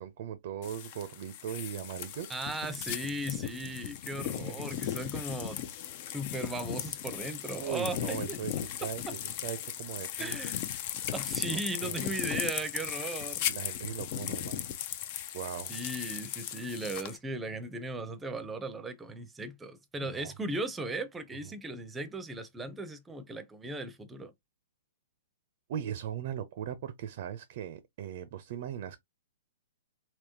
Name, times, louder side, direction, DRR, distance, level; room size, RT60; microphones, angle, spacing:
voice 1, 0.0-2.4 4.3-4.9 7.6-10.3 11.5-12.0 13.5-14.7 15.3-15.7 20.0-20.3 25.7-29.0, right 9 dB, 50° right, 0.5 m, -39 dB
sound 1, 0.6-17.2, left 11 dB, 45° left, 0.6 m, -37 dB
voice 2, 2.3-5.6 6.1-8.4 8.8-9.1 10.2-10.6 11.1-13.6 15.7-24.3, right 2 dB, 10° right, 0.7 m, -37 dB
3.5 x 2.9 x 2.8 m
hypercardioid pair, 120°, 0 cm